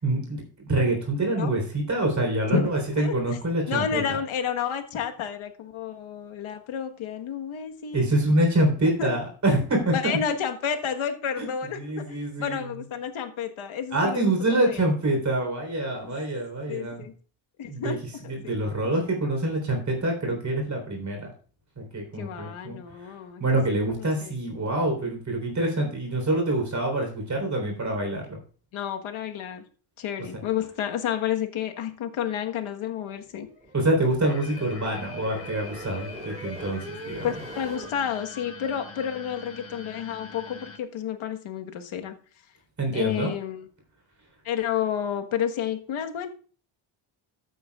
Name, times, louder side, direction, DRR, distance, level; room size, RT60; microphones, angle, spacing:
voice 1, 0.0-4.0 7.9-10.1 11.4-11.5 11.8-12.6 13.9-17.0 17.6-18.0 18.3-21.3 21.8-23.1 23.4-28.4 30.3-30.4 33.7-37.3 42.8-43.3, right 1 dB, 35° right, 3 dB, 3.8 m, -26 dB
voice 2, 2.5-3.1 3.7-8.2 9.0-9.1 9.9-12.0 12.4-14.8 16.0-16.1 16.7-17.1 17.6-18.0 18.2-18.5 22.2-23.4 24.2-24.3 28.7-29.6 30.0-33.5 37.0-42.2 42.9-43.7 44.4-46.3, left 8 dB, 70° left, 5 dB, 1.4 m, -30 dB
sound 1, 33.2-37.9, right 1 dB, 15° right, 2.9 m, -41 dB
sound 2, 34.2-40.8, left 4 dB, 25° left, 1.4 m, -44 dB
14.5 x 9.3 x 2.4 m, 0.39 s
cardioid pair, 115°, 49 cm